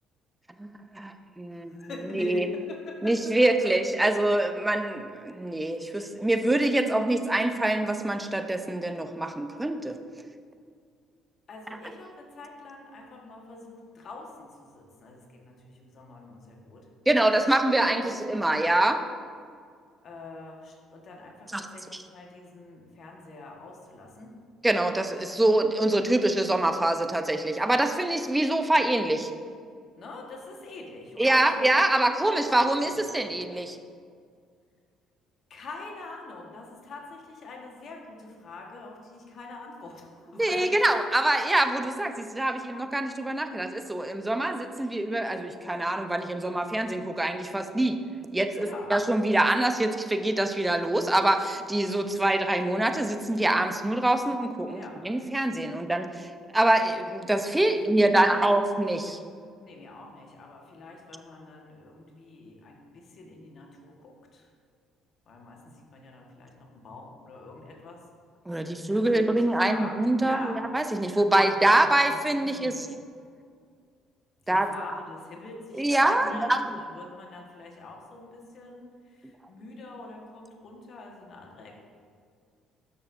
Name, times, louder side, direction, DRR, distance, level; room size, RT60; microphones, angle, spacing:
voice 1, 0.6-1.7 2.1-2.5 3.0-10.0 17.1-19.0 21.5-21.7 24.6-29.3 31.2-33.7 40.4-48.0 48.3-59.2 68.5-72.9 74.5-74.7 75.8-76.6, right 1 dB, 10° right, 7 dB, 0.8 m, -25 dB
voice 2, 1.5-3.7 11.5-16.9 17.8-18.1 20.0-24.4 30.0-31.7 32.0-32.6 32.8-33.4 35.5-40.7 48.6-48.9 54.7-55.0 58.0-58.5 59.6-64.5 65.3-68.0 68.6-70.6 71.2-72.9 74.5-81.7, left 2 dB, 50° left, 0 dB, 1.6 m, -44 dB
12.5 x 6.6 x 2.7 m, 2.1 s
hypercardioid pair, 55°, 0 cm